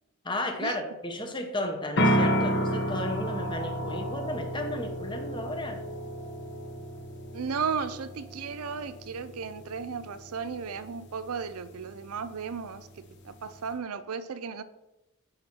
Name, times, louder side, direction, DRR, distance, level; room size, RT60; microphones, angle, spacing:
voice 1, 0.2-5.8, left 1 dB, 20° left, 5 dB, 0.9 m, -34 dB
sound 1, 2.0-13.7, equal, 55° left, 1.0 m, -32 dB
voice 2, 7.3-14.6, right 5 dB, 90° right, 13 dB, 0.5 m, -35 dB
10.0 x 4.3 x 4.5 m, 0.95 s
head